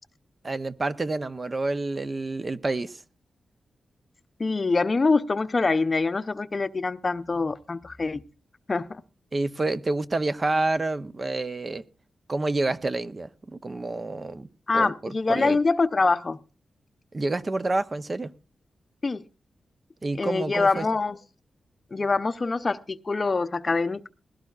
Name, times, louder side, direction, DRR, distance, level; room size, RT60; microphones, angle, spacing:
voice 1, 0.4-3.0 9.3-11.8 12.3-14.5 14.7-15.6 17.1-18.3 20.0-20.9, right 2 dB, 30° right, 0.6 m, -28 dB
voice 2, 4.4-8.2 8.7-9.0 14.7-16.4 19.0-19.2 20.2-21.2 21.9-24.1, left 3 dB, 30° left, 0.6 m, -24 dB
19.5 x 16.5 x 2.4 m
wide cardioid pair, 130°, 0 cm